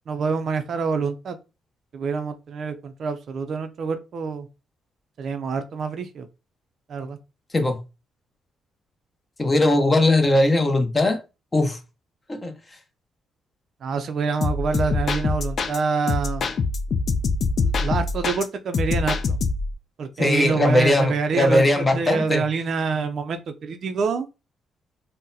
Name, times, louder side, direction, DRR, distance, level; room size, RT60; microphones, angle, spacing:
voice 1, 0.1-1.4 1.9-4.5 5.2-6.3 6.9-7.2 13.8-16.5 17.6-19.4 20.0-24.3, right 5 dB, 60° right, 0.4 m, -26 dB
voice 2, 9.4-11.2 11.5-11.8 12.3-12.5 20.2-22.4, left 1 dB, 25° left, 0.7 m, -19 dB
sound 1, 14.4-15.8 16.1-18.4 18.7-19.7, left 4 dB, 55° left, 0.4 m, -24 dB
3.8 x 2.0 x 2.7 m
cardioid pair, 90°, 0 cm